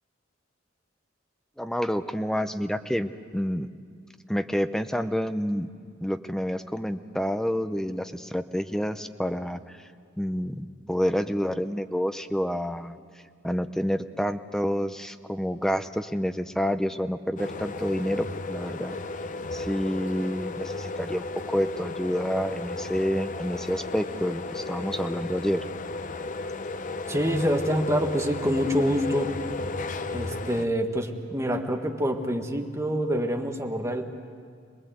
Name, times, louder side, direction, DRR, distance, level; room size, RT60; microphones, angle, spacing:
voice 1, 1.6-3.7 4.3-5.7 6.0-9.6 10.2-13.0 13.4-19.0 19.5-25.6, equal, 5° left, 10 dB, 0.7 m, -28 dB
sound 1, 17.4-30.7, left 3 dB, 45° left, 0.7 m, -34 dB
voice 2, 27.1-29.4 30.1-34.0, equal, 15° right, 4 dB, 1.5 m, -26 dB
26.0 x 20.0 x 8.0 m, 2.2 s
head